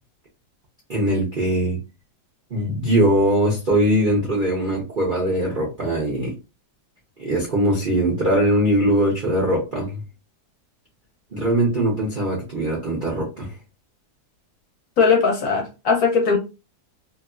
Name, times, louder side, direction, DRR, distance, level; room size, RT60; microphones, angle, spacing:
voice 1, 0.9-1.8 2.5-6.4 7.2-10.0 11.3-13.5, right 1 dB, 55° right, 0.5 m, -21 dB
voice 2, 15.0-16.4, left 5 dB, 65° left, 1.0 m, -19 dB
3.0 x 2.6 x 2.4 m
omnidirectional pair, 2.0 m